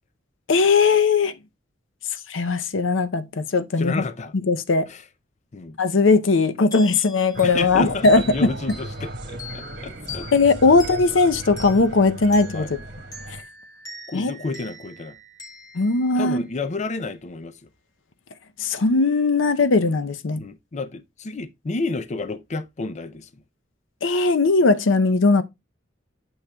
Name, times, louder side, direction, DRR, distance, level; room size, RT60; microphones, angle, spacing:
voice 1, 0.5-1.3 2.3-4.0 4.5-4.9 5.8-8.5 10.3-12.7 13.3-13.4 14.1-14.3 15.7-16.4 18.6-20.4 24.0-25.4, left 3 dB, 80° left, 0.6 m, -19 dB
voice 2, 3.8-4.3 4.9-5.0 5.5-5.8 7.4-10.3 10.7-10.8 12.5-12.7 14.1-15.2 16.2-17.7 20.4-23.4, left 3 dB, 40° left, 0.5 m, -31 dB
sound 1, 6.7-17.0, left 1 dB, 20° left, 2.2 m, -42 dB
sound 2, 7.3-13.4, right 1 dB, 60° right, 1.6 m, -36 dB
8.7 x 6.4 x 2.2 m
head